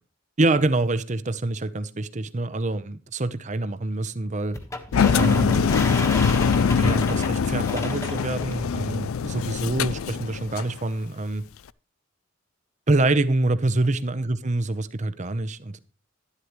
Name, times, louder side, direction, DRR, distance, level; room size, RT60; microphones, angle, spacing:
voice 1, 0.4-4.6 5.2-5.7 6.2-11.4 12.9-15.8, right 2 dB, 35° right, 0.7 m, -26 dB
sound 1, 4.5-8.6, left 2 dB, 15° left, 1.3 m, -33 dB
Engine, 4.9-10.7, left 6 dB, 85° left, 0.4 m, -23 dB
11.5 x 11.5 x 3.1 m
head